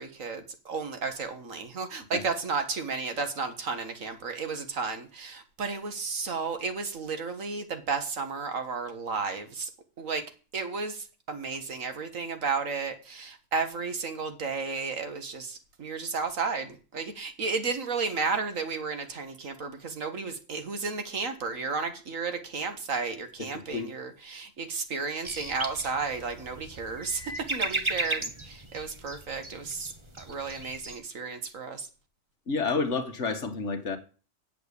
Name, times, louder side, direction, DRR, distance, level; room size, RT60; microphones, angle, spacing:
voice 1, 0.0-9.7 10.0-10.2 10.5-31.9, right 4 dB, 80° right, 2.0 m, -33 dB
sound 1, 25.2-31.0, right 2 dB, 25° right, 1.2 m, -36 dB
voice 2, 32.5-34.0, left 4 dB, 65° left, 1.7 m, -29 dB
8.1 x 7.8 x 8.3 m
omnidirectional pair, 1.3 m